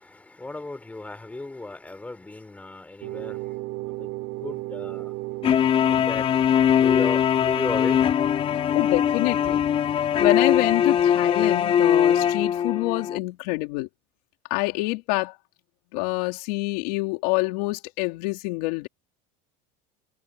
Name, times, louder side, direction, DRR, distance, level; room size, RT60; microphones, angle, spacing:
voice 1, 0.4-3.4 4.0-4.1 4.4-5.1 5.8-6.3 6.7-8.0, left 2 dB, 5° left, 4.4 m, -34 dB
sound 1, 3.0-5.7, right 22 dB, 60° right, 4.2 m, -33 dB
sound 2, 5.4-13.2, left 9 dB, 30° left, 3.4 m, -21 dB
voice 2, 8.7-9.6 10.2-13.9 14.5-15.3 15.9-18.9, left 23 dB, 80° left, 3.3 m, -26 dB
cardioid pair, 170°, 20 cm